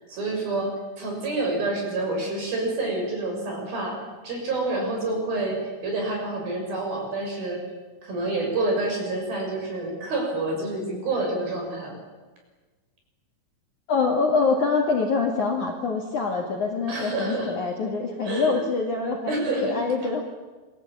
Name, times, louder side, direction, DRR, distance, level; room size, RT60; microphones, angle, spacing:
voice 1, 0.1-4.0 4.2-7.6 8.0-12.0 16.9-17.5 18.2-18.6 19.3-19.8, right 2 dB, 45° right, 1 dB, 7.9 m, -28 dB
voice 2, 13.9-20.2, left 4 dB, 50° left, 1 dB, 2.8 m, -25 dB
27.5 x 21.5 x 8.6 m, 1.3 s
omnidirectional pair, 5.9 m